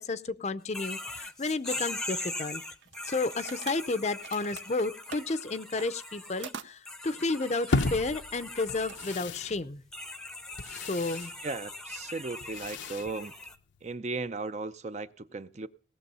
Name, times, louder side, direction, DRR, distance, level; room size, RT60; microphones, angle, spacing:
voice 1, 0.0-2.6 3.1-9.8 10.7-11.3, left 3 dB, 35° left, 0.6 m, -32 dB
sound 1, 0.7-6.5 6.9-9.2 9.9-13.6, left 2 dB, 5° left, 0.7 m, -41 dB
sound 2, 1.4-2.4 2.8-5.2 5.7-6.7 7.7-7.8 8.2-9.3, right 6 dB, 80° right, 0.8 m, -45 dB
sound 3, 7.7-13.9, left 3 dB, 85° left, 0.8 m, -36 dB
voice 2, 11.4-13.3 13.8-15.7, right 3 dB, 40° right, 0.5 m, -36 dB
18.0 x 6.9 x 5.5 m
head